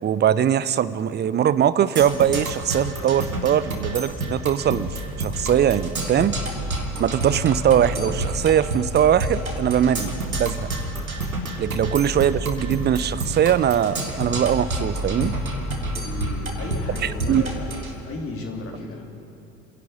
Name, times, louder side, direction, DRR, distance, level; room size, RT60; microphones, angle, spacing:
voice 1, 0.0-6.4 7.0-10.1 10.4-10.6 11.6-15.4 17.0-17.4, right 9 dB, 25° right, 16 dB, 0.6 m, -21 dB
Percussion, 2.0-17.9, right 1 dB, 85° right, 1.8 m, -30 dB
sound 1, 4.6-17.6, equal, 55° left, 3.6 m, -34 dB
voice 2, 16.0-19.1, left 3 dB, 30° left, 0 dB, 3.6 m, -34 dB
27.5 x 11.0 x 8.5 m, 2.9 s
figure-of-eight pair, 60°, 41 cm